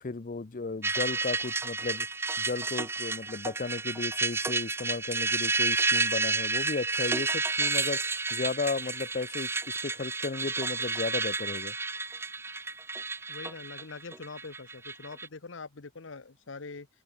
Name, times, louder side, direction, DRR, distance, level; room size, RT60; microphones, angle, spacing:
voice 1, 0.0-2.1 2.4-11.7, left 3 dB, 40° left, 0.6 m, -34 dB
sound 1, 0.8-15.3, right 4 dB, 10° right, 0.4 m, -31 dB
voice 2, 13.3-16.9, left 4 dB, 65° left, 1.0 m, -43 dB
head